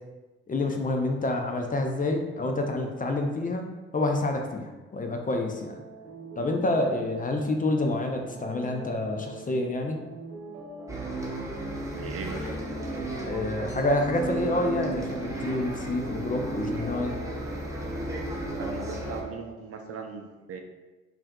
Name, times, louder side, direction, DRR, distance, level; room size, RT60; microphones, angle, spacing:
voice 1, 0.5-3.7 3.9-5.8 6.4-10.0 13.2-17.1, left 2 dB, 25° left, 3 dB, 0.6 m, -28 dB
sound 1, 5.3-19.4, right 1 dB, 85° right, 0.8 m, -42 dB
Bus, 10.9-19.2, right 2 dB, 10° right, 0.9 m, -34 dB
voice 2, 11.9-12.6 18.6-20.6, right 5 dB, 45° right, 4 dB, 0.6 m, -38 dB
5.6 x 2.6 x 2.3 m, 1.2 s
hypercardioid pair, 50°, 33 cm